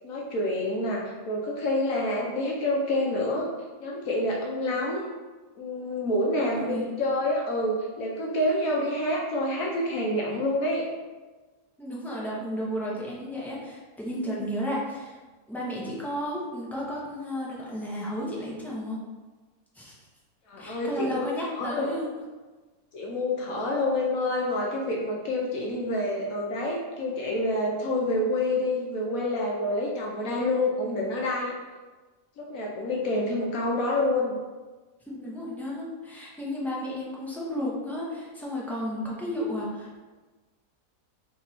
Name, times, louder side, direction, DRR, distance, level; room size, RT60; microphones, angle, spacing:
voice 1, 0.0-3.5 3.8-5.1 5.6-6.6 7.0-10.9 20.5-21.3 21.6-21.9 22.9-31.5 32.4-34.4, left 1 dB, 70° left, -2 dB, 1.1 m, -27 dB
voice 2, 6.3-6.9 11.8-15.2 15.5-19.0 19.7-20.0 20.6-22.1 35.1-40.0, equal, ahead, -6 dB, 0.4 m, -33 dB
3.4 x 3.0 x 4.1 m, 1.3 s
omnidirectional pair, 1.6 m